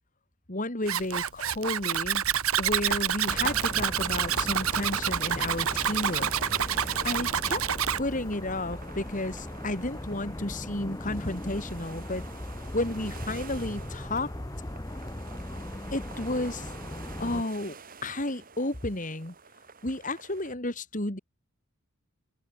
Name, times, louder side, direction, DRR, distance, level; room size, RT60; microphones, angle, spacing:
voice 1, 0.5-2.2 2.6-6.3 6.6-6.7 7.0-7.6 8.0-12.2 12.7-14.3 15.9-16.7 17.2-17.8 18.0-19.3 19.8-21.2, left 1 dB, 35° left, 2.8 m, -32 dB
Zipper (clothing), 0.9-8.0, right 9 dB, 75° right, 1.4 m, -28 dB
sound 1, 2.9-20.5, right 5 dB, 40° right, 3.1 m, -50 dB
sound 2, 3.3-17.4, left 1 dB, 15° left, 1.0 m, -39 dB
head